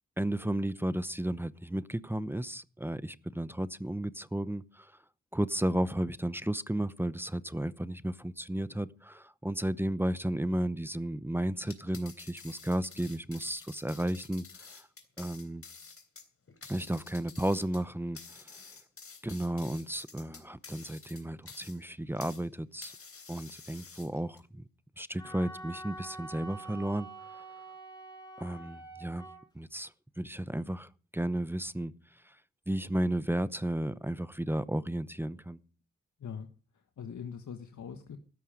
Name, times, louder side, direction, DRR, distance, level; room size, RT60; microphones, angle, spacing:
voice 1, 0.2-4.9 5.3-14.9 15.2-15.6 16.7-18.6 19.2-22.9 23.3-24.6 25.0-27.4 28.4-29.3 29.5-29.9 30.2-31.9 32.2-32.4 32.7-35.6, right 1 dB, 5° right, 0.8 m, -33 dB
sound 1, 11.6-22.5 22.8-24.4, left 5 dB, 45° left, 3.4 m, -50 dB
Wind instrument woodwind instrument, 25.2-29.4, right 2 dB, 10° left, 5.6 m, -46 dB
voice 2, 36.7-38.2, left 7 dB, 70° left, 1.6 m, -42 dB
15.5 x 13.0 x 5.1 m
wide cardioid pair, 110°, 31 cm